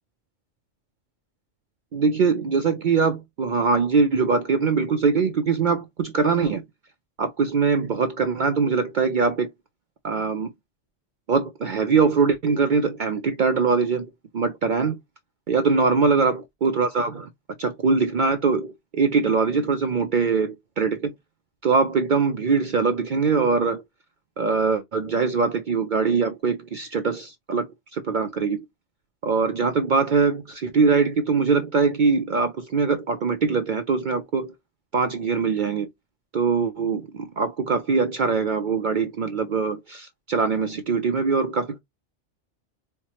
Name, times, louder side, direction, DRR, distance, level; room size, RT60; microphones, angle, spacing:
voice 1, 1.9-6.6 7.2-9.5 10.0-10.5 11.3-14.1 14.3-15.0 15.5-17.3 17.6-21.1 21.6-23.8 24.4-28.6 29.2-34.5 34.9-35.9 36.3-41.8, right 4 dB, 55° right, 0.5 m, -22 dB
4.4 x 2.2 x 2.8 m
omnidirectional pair, 1.2 m